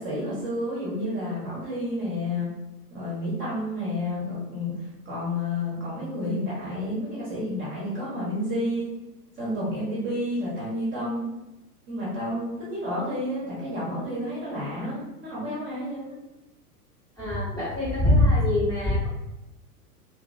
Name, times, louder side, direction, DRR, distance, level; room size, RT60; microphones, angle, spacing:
voice 1, 0.0-2.5 2.9-4.7 5.0-8.9 9.4-11.3 11.9-16.2, left 1 dB, 25° right, -7 dB, 0.9 m, -30 dB
voice 2, 17.2-19.1, left 1 dB, 10° left, -9 dB, 0.9 m, -22 dB
2.8 x 2.6 x 2.4 m, 0.96 s
figure-of-eight pair, 100°, 47 cm